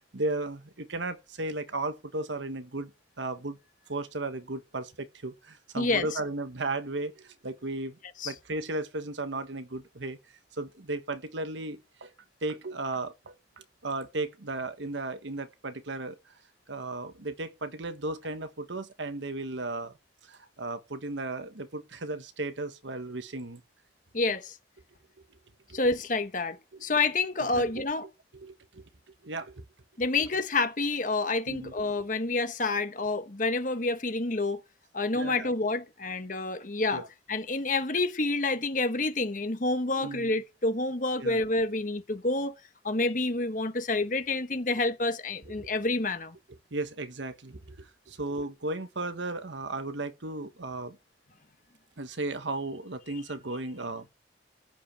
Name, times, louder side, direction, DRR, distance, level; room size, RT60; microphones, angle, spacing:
voice 1, 0.0-2.9 3.2-3.6 3.9-8.0 8.2-10.2 10.5-12.1 12.4-16.3 16.7-20.0 20.2-23.6 25.7-25.8 26.7-26.8 27.4-27.8 28.3-28.8 29.2-29.6 31.5-31.7 35.1-35.5 36.9-37.1 40.0-40.3 41.2-41.4 45.6-45.7 46.7-51.0 52.0-54.1, right 2 dB, 75° right, 1.3 m, -35 dB
voice 2, 24.1-24.6 25.7-28.1 30.0-34.6 34.9-42.5 42.8-46.4, left 3 dB, 45° left, 1.2 m, -28 dB
14.5 x 5.0 x 8.7 m
head